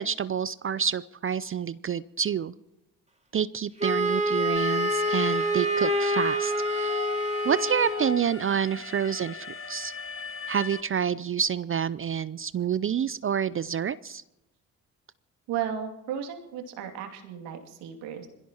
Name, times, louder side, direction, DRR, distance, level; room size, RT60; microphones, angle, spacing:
voice 1, 0.0-2.5 3.3-7.1 7.4-9.9 10.5-14.2, right 8 dB, 30° right, 18 dB, 0.5 m, -28 dB
Wind instrument woodwind instrument, 3.8-8.2, equal, 15° right, 2.2 m, -26 dB
Alarm, 4.6-10.8, left 4 dB, 30° left, 1.7 m, -39 dB
voice 2, 15.5-18.3, right 9 dB, 75° right, 4 dB, 2.6 m, -34 dB
26.0 x 16.0 x 2.9 m, 0.93 s
hypercardioid pair, 50°, 41 cm